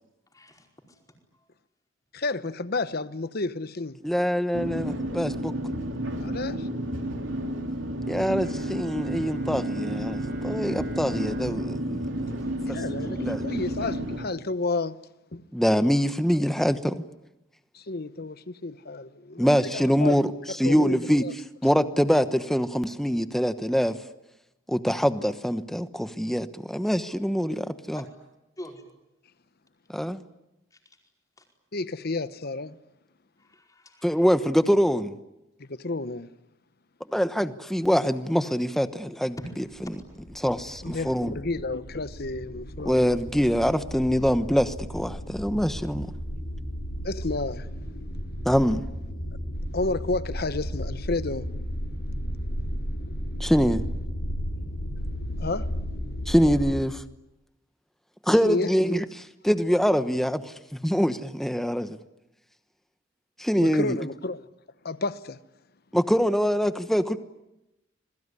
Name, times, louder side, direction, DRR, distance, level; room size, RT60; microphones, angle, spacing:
voice 1, 0.3-1.0 1.3-1.4 12.4-12.6 27.9-28.0 28.6-28.8 30.7-30.8 31.4-31.5 33.4-34.2 39.4-39.5, equal, 20° left, 4.9 m, -44 dB
voice 2, 2.1-4.0 6.2-6.7 12.7-14.9 15.3-15.4 17.7-20.2 20.6-21.3 31.7-32.8 35.6-36.3 40.8-43.1 47.0-47.7 49.7-51.5 55.4-55.7 58.4-58.7 63.6-64.4 64.8-65.4, left 3 dB, 50° left, 1.0 m, -31 dB
voice 3, 4.0-5.5 8.1-12.4 12.7-12.8 13.0-13.4 15.5-17.0 19.4-21.2 21.6-24.0 24.7-28.0 29.9-30.2 34.0-35.1 37.1-39.4 40.4-41.3 42.8-46.1 48.4-48.8 53.4-53.8 56.3-57.0 58.2-62.0 63.4-64.0 65.9-67.2, equal, ahead, 1.1 m, -24 dB
sound 1, 4.5-14.3, right 1 dB, 75° right, 3.2 m, -31 dB
Bowed string instrument, 8.4-13.3, right 1 dB, 60° right, 4.6 m, -43 dB
sound 2, 39.7-56.7, equal, 70° left, 5.9 m, -34 dB
27.5 x 21.5 x 9.8 m
head